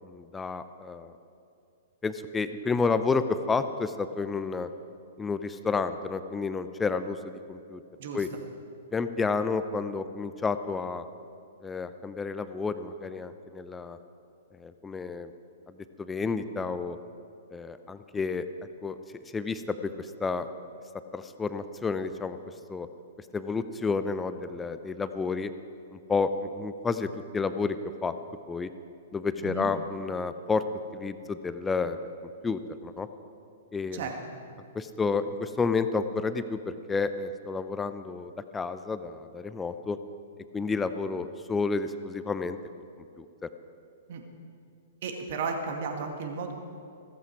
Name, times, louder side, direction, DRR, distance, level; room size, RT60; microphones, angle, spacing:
voice 1, 0.0-1.1 2.0-4.7 5.2-7.8 8.1-8.3 8.9-11.0 11.6-14.0 14.5-15.3 15.7-17.0 17.5-18.5 18.8-20.5 21.1-22.4 22.7-22.9 23.2-25.5 25.9-27.8 28.0-28.1 28.5-28.7 29.1-30.6 30.9-33.1 33.7-34.1 34.7-40.0 40.5-42.6 43.2-43.3, left 4 dB, 15° left, 11 dB, 0.6 m, -30 dB
voice 2, 29.4-29.7 33.9-34.4 44.1-44.2 45.0-46.5, right 5 dB, 55° right, 4 dB, 1.9 m, -34 dB
15.0 x 14.0 x 4.7 m, 2.5 s
figure-of-eight pair, 110°, 0 cm